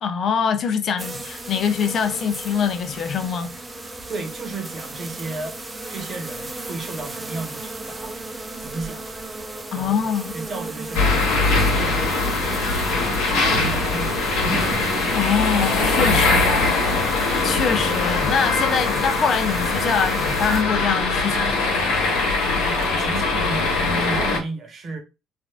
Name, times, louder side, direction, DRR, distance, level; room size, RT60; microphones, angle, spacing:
voice 1, 0.0-3.6 9.7-10.3 15.1-16.7 17.4-21.7, left 7 dB, 50° left, 0.4 m, -24 dB
sound 1, 1.0-20.6, right 2 dB, 15° right, 0.6 m, -35 dB
voice 2, 4.1-5.6 5.9-8.2 8.6-9.1 9.7-10.0 10.3-12.9 13.3-14.7 22.7-25.0, right 3 dB, 40° right, 1.0 m, -34 dB
sound 2, 10.9-24.4, left 3 dB, 90° left, 1.2 m, -21 dB
3.3 x 2.4 x 2.3 m
cardioid pair, 115°, 0 cm